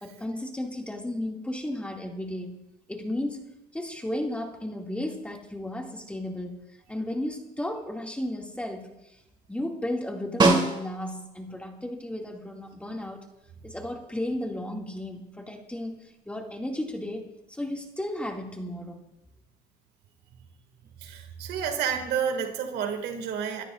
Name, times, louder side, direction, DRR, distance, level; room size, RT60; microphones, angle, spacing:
voice 1, 0.0-2.6 2.9-3.4 3.7-6.6 6.9-9.2 9.5-13.2 13.6-19.0, left 1 dB, 5° left, 1 dB, 2.3 m, -34 dB
Snare drum, 10.4-11.3 15.8-15.9, right 2 dB, 25° right, 2.7 m, -23 dB
voice 2, 21.0-23.6, right 7 dB, 75° right, 5 dB, 2.3 m, -30 dB
27.0 x 13.5 x 2.6 m, 0.88 s
cardioid pair, 110°, 17 cm